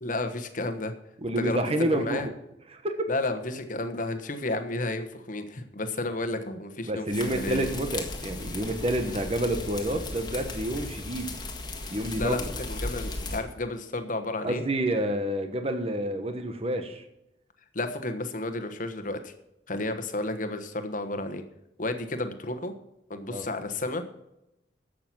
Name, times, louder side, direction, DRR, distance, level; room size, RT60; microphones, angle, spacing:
voice 1, 0.0-0.9 1.4-1.6 1.9-2.3 3.1-7.7 12.2-14.6 17.7-19.3 19.7-21.4 21.8-22.7 23.1-24.1, left 2 dB, 50° left, 8 dB, 1.2 m, -32 dB
voice 2, 1.2-2.3 2.7-3.0 6.9-11.3 11.9-12.5 14.4-17.0 23.3-23.5, right 1 dB, 35° right, 7 dB, 1.1 m, -29 dB
sound 1, 7.1-13.4, left 2 dB, 25° left, 1.8 m, -36 dB
12.0 x 7.7 x 6.0 m, 0.86 s
head